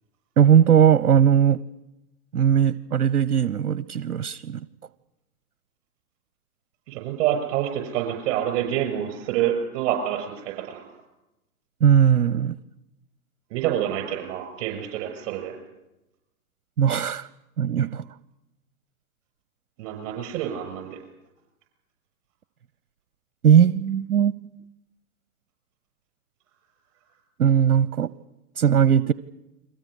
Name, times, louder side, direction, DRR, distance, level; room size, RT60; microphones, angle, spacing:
voice 1, 0.4-1.6 2.3-4.6 11.8-12.6 16.8-17.3 17.6-18.0 23.4-24.4 27.4-28.1 28.6-29.1, right 8 dB, 75° right, 18 dB, 0.9 m, -18 dB
voice 2, 6.9-10.8 13.5-15.5 19.8-21.0, right 11 dB, 40° right, 4 dB, 6.7 m, -27 dB
30.0 x 22.5 x 6.5 m, 0.93 s
figure-of-eight pair, 115°, 44 cm